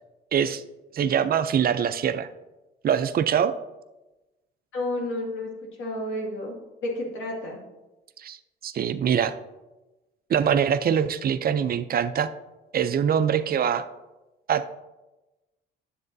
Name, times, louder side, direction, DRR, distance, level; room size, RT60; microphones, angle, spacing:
voice 1, 0.3-0.6 0.9-2.3 2.8-3.5 8.2-8.4 8.6-9.3 10.3-12.3 12.7-13.9 14.5-14.6, right 8 dB, 50° right, 11 dB, 0.5 m, -23 dB
voice 2, 4.7-5.5 5.8-6.5 6.8-7.6, left 1 dB, 75° left, -1 dB, 2.2 m, -30 dB
10.0 x 7.5 x 2.7 m, 1.1 s
cardioid pair, 90°, 20 cm